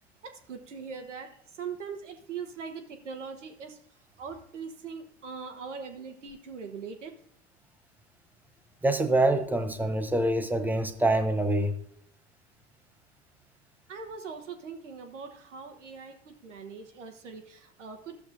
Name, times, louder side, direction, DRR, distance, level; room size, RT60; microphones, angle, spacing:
voice 1, 0.2-3.8 4.2-7.1 13.9-18.2, right 5 dB, 80° right, 6 dB, 1.1 m, -41 dB
voice 2, 8.8-11.8, right 1 dB, 5° right, 8 dB, 0.6 m, -25 dB
13.5 x 6.8 x 2.6 m, 0.67 s
figure-of-eight pair, 80°, 36 cm